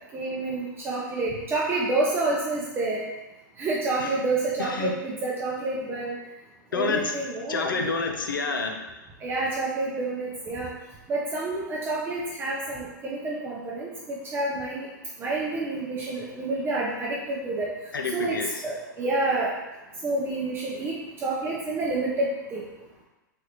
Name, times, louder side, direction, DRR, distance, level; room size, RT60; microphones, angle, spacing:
voice 1, 0.1-3.0 3.6-6.2 6.7-7.8 9.2-10.7 11.1-14.9 15.2-17.7 18.1-19.5 20.0-20.9 21.2-22.6, right 2 dB, 20° right, -4 dB, 0.5 m, -28 dB
voice 2, 4.6-4.9 6.7-7.2 7.5-8.8 17.9-18.6, left 4 dB, 85° left, 3 dB, 0.4 m, -28 dB
3.3 x 2.3 x 2.9 m, 1.0 s
hypercardioid pair, 110°, 11 cm